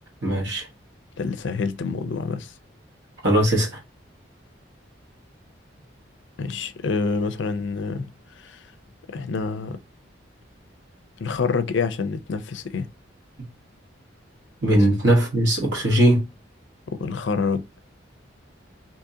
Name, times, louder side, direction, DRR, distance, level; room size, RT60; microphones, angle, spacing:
voice 1, 0.2-0.6 3.2-3.7 14.6-16.2, right 1 dB, 65° right, 1.2 m, -19 dB
voice 2, 1.2-2.5 6.4-8.1 8.4-8.6 9.1-9.8 11.2-12.9 16.9-17.6, left 4 dB, 65° left, 0.4 m, -27 dB
2.8 x 2.7 x 3.6 m
head